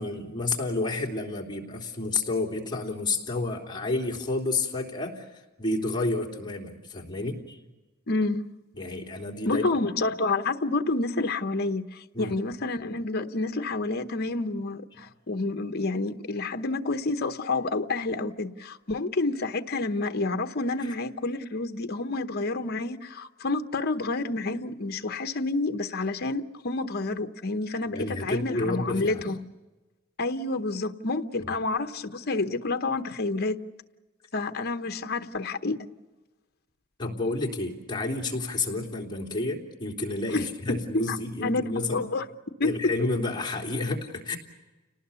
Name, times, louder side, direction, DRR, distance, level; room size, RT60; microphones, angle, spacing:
voice 1, 0.0-7.6 8.8-9.6 12.1-12.4 20.8-20.9 27.9-29.2 37.0-42.0 42.6-44.4, left 2 dB, 20° left, 3.3 m, -30 dB
voice 2, 8.1-8.4 9.5-29.4 30.2-33.6 34.3-35.8 40.3-41.6 41.9-42.2 42.6-42.9, left 3 dB, 50° left, 0.9 m, -29 dB
30.0 x 19.0 x 6.9 m
head